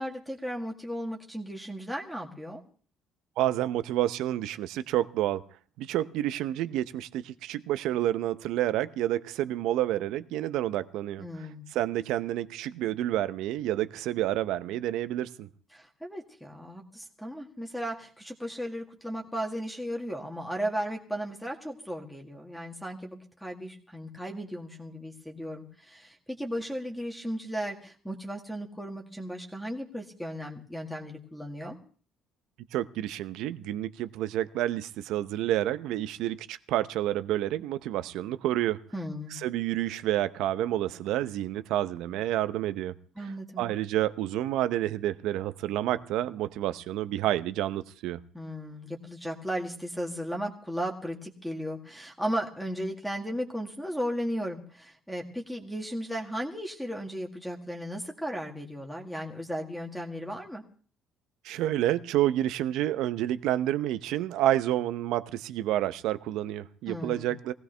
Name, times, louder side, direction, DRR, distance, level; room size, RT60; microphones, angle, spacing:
voice 1, 0.0-2.6 11.2-11.6 15.7-31.8 38.9-39.4 43.2-43.6 48.3-60.6 66.9-67.3, equal, ahead, 1.9 m, -35 dB
voice 2, 3.4-5.4 5.8-15.5 32.7-38.8 39.4-43.0 43.6-48.2 61.4-67.5, right 13 dB, 80° right, 0.8 m, -29 dB
20.5 x 16.0 x 3.4 m
cardioid pair, 120°, 0 cm